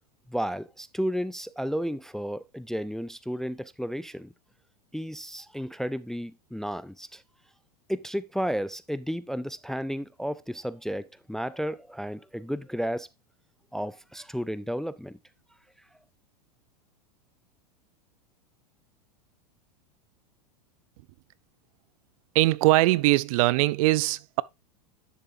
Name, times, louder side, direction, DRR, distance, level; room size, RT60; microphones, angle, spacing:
voice 1, 0.3-4.3 4.9-7.2 7.9-13.1 13.7-15.2, equal, ahead, 0.4 m, -32 dB
voice 2, 22.3-24.4, right 19 dB, 60° right, 0.4 m, -21 dB
10.0 x 7.0 x 2.5 m
hypercardioid pair, 100°, 21 cm